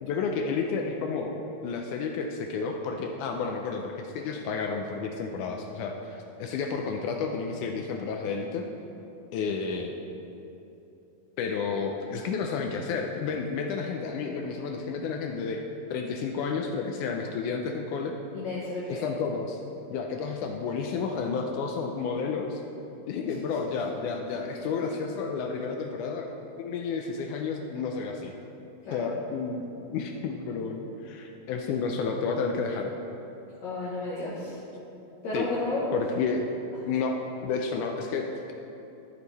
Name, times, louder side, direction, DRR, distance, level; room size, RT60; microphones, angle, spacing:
voice 1, 0.0-1.3 1.6-8.6 9.3-9.9 11.4-15.6 15.9-18.2 18.9-19.6 19.9-22.6 23.1-26.3 26.6-28.3 28.9-32.9 34.5-34.6 35.3-35.5 35.9-36.5 36.9-37.1 37.4-38.5, left 5 dB, 80° left, 3 dB, 1.8 m, -31 dB
voice 2, 18.3-19.0 23.2-23.3 28.9-29.0 33.6-34.6 35.2-35.9, left 2 dB, 60° left, -7 dB, 2.2 m, -32 dB
12.5 x 6.5 x 4.1 m, 2.9 s
omnidirectional pair, 4.1 m